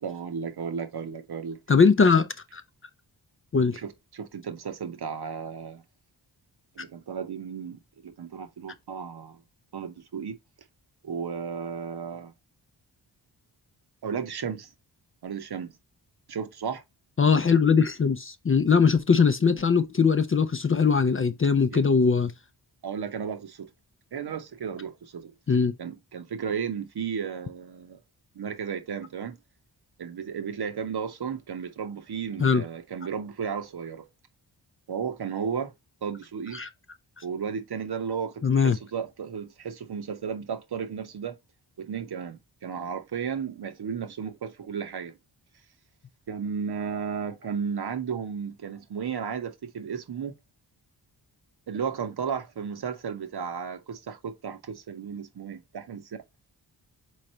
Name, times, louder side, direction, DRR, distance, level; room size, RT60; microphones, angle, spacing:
voice 1, 0.0-1.6 3.7-5.8 6.8-9.4 9.7-10.4 11.0-12.3 14.0-14.7 15.2-15.7 16.3-16.8 21.7-21.8 22.8-23.7 24.1-25.3 25.8-28.0 28.3-29.4 30.0-34.1 34.9-35.7 36.0-36.6 37.2-41.4 41.8-45.1 46.3-50.3 51.7-56.2, right 7 dB, 55° right, 0.8 m, -34 dB
voice 2, 1.7-2.6 3.5-3.8 17.2-22.3 25.5-25.7 32.4-32.6 36.5-36.7 38.4-38.8, left 5 dB, 30° left, 0.5 m, -21 dB
3.8 x 3.2 x 4.2 m
cardioid pair, 45°, 45 cm